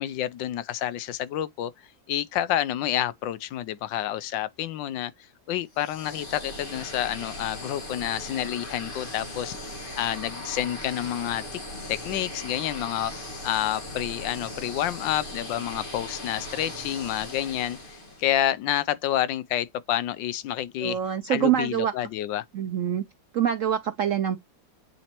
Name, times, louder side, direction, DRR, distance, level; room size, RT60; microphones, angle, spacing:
voice 1, 0.0-1.7 2.1-5.1 5.5-9.7 10.0-11.6 11.9-17.8 18.2-21.0 21.3-22.4, left 12 dB, 75° left, 1.3 m, -29 dB
sound 1, 5.7-18.4, left 1 dB, 30° left, 1.6 m, -38 dB
voice 2, 20.8-21.9 22.5-23.0 23.3-24.4, right 10 dB, 85° right, 0.7 m, -25 dB
8.8 x 4.2 x 2.9 m
omnidirectional pair, 2.1 m